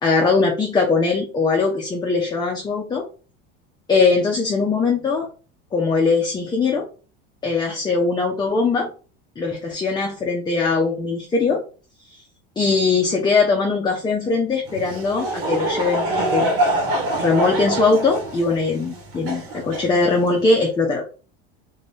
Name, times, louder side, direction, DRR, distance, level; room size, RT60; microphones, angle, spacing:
voice 1, 0.0-3.0 3.9-5.3 5.7-6.9 7.4-8.9 9.4-11.6 12.6-16.5 17.2-21.1, left 4 dB, 15° left, 0 dB, 0.6 m, -20 dB
Laughter / Crowd, 14.7-20.4, right 1 dB, 80° right, 1.3 m, -25 dB
2.7 x 2.6 x 3.4 m, 0.36 s
supercardioid pair, 120°, 29 cm